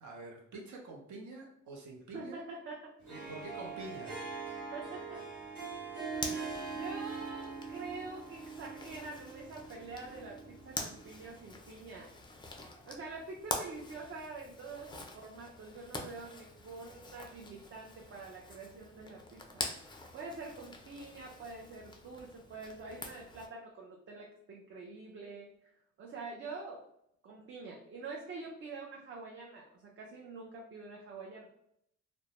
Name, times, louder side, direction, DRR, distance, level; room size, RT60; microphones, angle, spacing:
voice 1, 0.0-2.4 3.1-4.2, right 2 dB, 70° right, 0 dB, 0.8 m, -46 dB
voice 2, 2.1-2.9 4.7-5.3 6.1-12.5 12.9-19.6 20.1-25.5 26.0-26.8 27.2-31.5, right 3 dB, 45° right, -2 dB, 0.5 m, -46 dB
Harp, 3.0-11.3, right 4 dB, 90° right, 1.0 m, -43 dB
Zipper (clothing), 6.1-23.5, left 2 dB, 15° left, 0.3 m, -46 dB
2.1 x 2.0 x 2.8 m, 0.73 s
cardioid pair, 90°, 30 cm